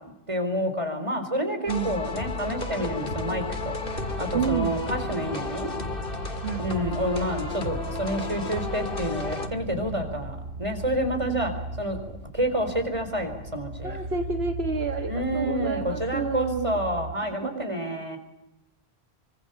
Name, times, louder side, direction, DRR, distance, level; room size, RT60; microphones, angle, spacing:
voice 1, 0.0-3.8 4.2-5.7 6.6-11.5 11.8-14.0 15.1-18.2, equal, 30° right, 7 dB, 4.5 m, -29 dB
sound 1, 1.7-9.5, left 3 dB, 55° left, 2.2 m, -33 dB
voice 2, 1.7-2.0 4.3-4.8 6.4-7.2 11.3-11.5 13.8-16.8 17.4-17.6, right 5 dB, 70° right, 5 dB, 1.8 m, -30 dB
sound 2, 1.9-17.2, right 2 dB, 85° right, 3.7 m, -38 dB
25.0 x 25.0 x 7.0 m, 0.89 s
omnidirectional pair, 1.1 m